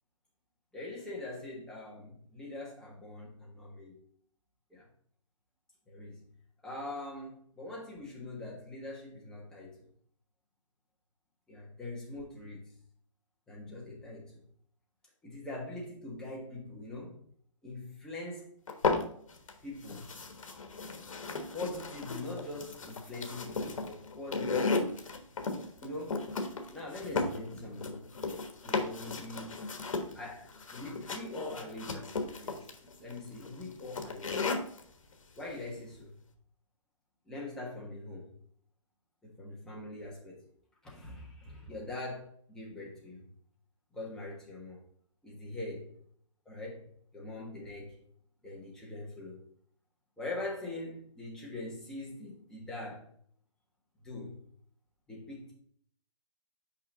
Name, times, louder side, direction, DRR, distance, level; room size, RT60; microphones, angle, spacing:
voice 1, 0.7-4.0 4.7-4.9 5.9-6.2 6.6-9.8 11.5-12.7 13.5-14.4 15.2-17.2 17.6-18.5 19.6-20.1 21.5-24.9 25.5-26.3 26.7-28.2 28.6-29.6 30.1-32.7 33.0-34.5 35.4-36.1 37.3-38.3 39.2-40.4 40.8-43.2 43.9-44.8 45.2-45.9 46.4-48.0 48.4-49.4 50.2-53.1 54.0-54.4 55.1-55.5, left 2 dB, 5° left, -4 dB, 1.3 m, -43 dB
sound 1, 18.7-19.5 19.8-34.8, left 4 dB, 80° left, 1.3 m, -35 dB
5.7 x 5.3 x 3.8 m, 0.62 s
hypercardioid pair, 160°, 17 cm